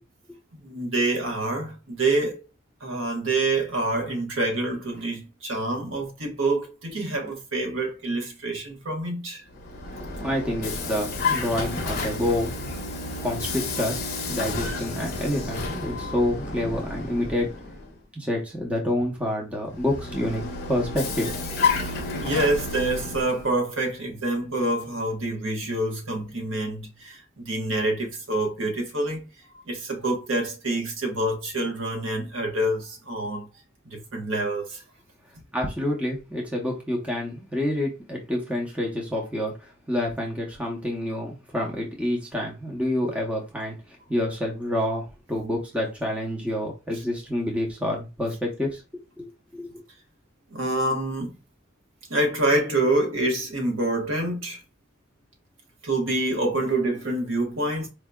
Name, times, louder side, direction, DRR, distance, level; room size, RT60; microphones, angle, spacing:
voice 1, 0.5-2.4 2.8-9.4 22.2-29.3 29.5-33.5 33.8-34.8 50.5-51.3 52.1-54.6 55.8-57.9, right 2 dB, 80° right, 1.1 m, -26 dB
Vehicle, 9.5-18.0 19.7-23.5, left 3 dB, 50° left, 0.7 m, -30 dB
voice 2, 10.2-12.7 13.2-14.0 14.3-17.5 18.2-20.4 20.7-21.3 35.5-43.8 44.1-48.8 49.2-49.7, left 1 dB, 5° right, 0.7 m, -28 dB
4.6 x 2.7 x 2.3 m
head